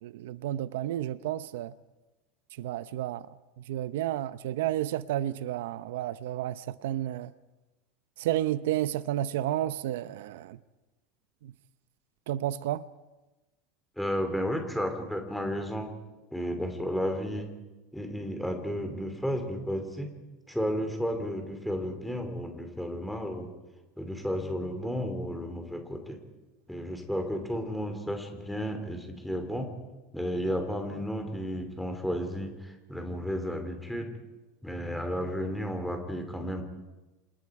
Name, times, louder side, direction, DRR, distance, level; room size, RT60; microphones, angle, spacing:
voice 1, 0.0-1.7 2.6-3.2 3.6-7.3 8.2-10.6 11.4-11.5 12.3-12.8, right 13 dB, 80° right, 0.7 m, -31 dB
voice 2, 14.0-15.9 16.3-17.5 17.9-20.1 20.5-23.5 24.0-26.2 26.7-29.7 30.1-34.1 34.6-36.6, equal, ahead, 2.7 m, -33 dB
28.5 x 26.5 x 4.9 m
supercardioid pair, 175°, 0 cm